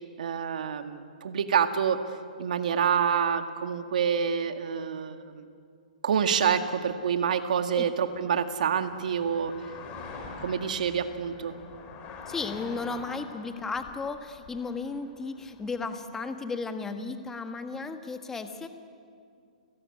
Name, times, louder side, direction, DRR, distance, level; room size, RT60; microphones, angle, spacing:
voice 1, 0.2-2.0 2.4-5.5 6.0-9.5 10.4-11.6, right 7 dB, 70° right, 7 dB, 1.9 m, -27 dB
sound 1, 6.2-16.3, left 4 dB, 25° left, 4.6 m, -46 dB
voice 2, 12.3-18.7, left 4 dB, 10° left, 7 dB, 1.5 m, -34 dB
30.0 x 17.0 x 9.8 m, 2.3 s
hypercardioid pair, 150°, 4 cm